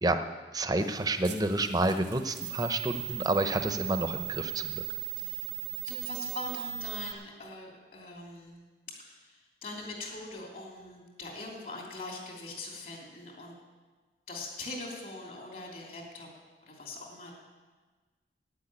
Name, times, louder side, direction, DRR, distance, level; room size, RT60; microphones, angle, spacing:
voice 1, 0.5-4.8, right 2 dB, 20° right, 8 dB, 0.8 m, -29 dB
sound 1, 0.8-7.1, right 18 dB, 85° right, 1.4 m, -38 dB
voice 2, 5.8-8.6 8.9-13.5 14.3-16.3 16.6-17.3, left 2 dB, 50° left, -1 dB, 3.1 m, -42 dB
12.0 x 9.5 x 8.8 m, 1.3 s
head